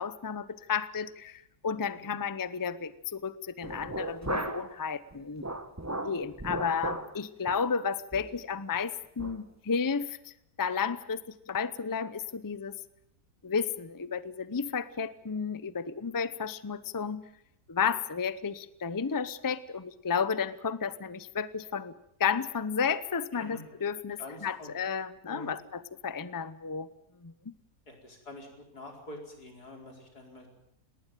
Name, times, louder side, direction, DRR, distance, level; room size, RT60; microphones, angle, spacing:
voice 1, 0.0-5.5 6.0-12.7 13.4-17.2 17.7-21.9 22.2-26.9 27.2-27.5, left 6 dB, 20° left, 15 dB, 0.5 m, -32 dB
sound 1, 3.6-4.8 5.1-7.1 7.5-7.6 8.1-8.4 8.7-8.8 9.2-9.4, right 2 dB, 10° right, 1.1 m, -36 dB
voice 2, 24.2-24.7 25.2-25.5 27.9-30.5, left 2 dB, 90° left, 2 dB, 5.4 m, -46 dB
19.5 x 19.0 x 9.0 m, 0.78 s
omnidirectional pair, 1.6 m